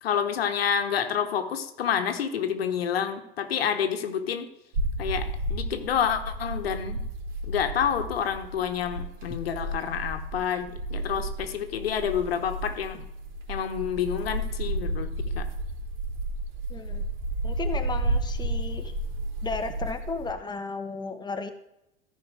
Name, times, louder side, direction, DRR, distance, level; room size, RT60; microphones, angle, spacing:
voice 1, 0.0-4.5 5.0-7.1 7.4-13.1 13.5-15.5, left 8 dB, 75° left, 8 dB, 1.2 m, -28 dB
sound 1, 4.7-20.3, right 1 dB, 60° right, 3.5 m, -32 dB
voice 2, 16.7-17.1 17.4-18.9 19.4-21.5, left 4 dB, 15° left, 7 dB, 1.1 m, -34 dB
14.0 x 5.1 x 4.9 m, 0.85 s
figure-of-eight pair, 80°, 31 cm